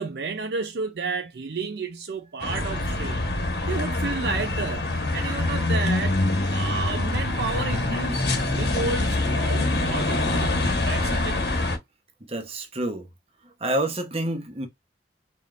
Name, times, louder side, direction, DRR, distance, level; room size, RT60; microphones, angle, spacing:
voice 1, 0.0-3.3 3.6-4.8 5.1-6.2 6.5-11.4, right 4 dB, 65° right, 0.5 m, -31 dB
sound 1, 2.4-11.8, left 2 dB, 70° left, 1.3 m, -25 dB
voice 2, 12.3-13.1 13.4-14.7, right 1 dB, 35° right, 1.0 m, -28 dB
4.3 x 3.4 x 2.5 m
head